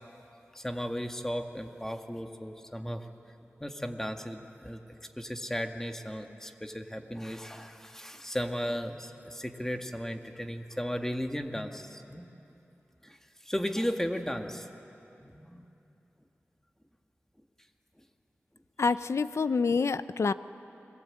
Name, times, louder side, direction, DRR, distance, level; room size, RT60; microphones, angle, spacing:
voice 1, 0.5-3.1 3.6-4.8 5.2-12.3 13.0-13.2 13.4-14.7 15.2-15.7, equal, 10° left, 5 dB, 1.8 m, -35 dB
voice 2, 18.8-20.3, left 4 dB, 80° left, 14 dB, 0.6 m, -27 dB
30.0 x 22.5 x 8.7 m, 2.9 s
wide cardioid pair, 70°, 5 cm